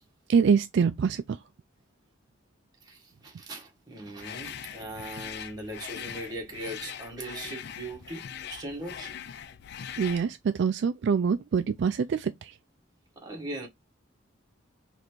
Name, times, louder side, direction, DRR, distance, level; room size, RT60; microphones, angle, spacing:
voice 1, 0.3-1.4 10.0-12.6, right 6 dB, 60° right, 0.3 m, -25 dB
voice 2, 2.8-9.2 13.2-13.7, right 1 dB, 20° right, 1.5 m, -39 dB
sound 1, 4.2-10.3, left 9 dB, 55° left, 0.4 m, -41 dB
4.1 x 3.3 x 3.1 m
head